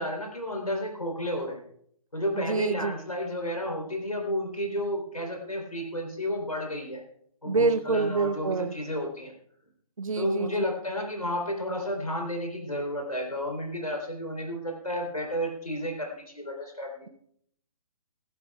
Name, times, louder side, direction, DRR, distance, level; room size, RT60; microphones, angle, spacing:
voice 1, 0.0-1.6 2.1-7.0 7.4-9.3 10.1-17.1, equal, 80° left, 1 dB, 3.6 m, -32 dB
voice 2, 2.3-2.9 7.4-8.7 10.0-10.6, right 4 dB, 65° right, 15 dB, 0.8 m, -27 dB
29.5 x 12.0 x 2.4 m, 0.66 s
figure-of-eight pair, 130°, 18 cm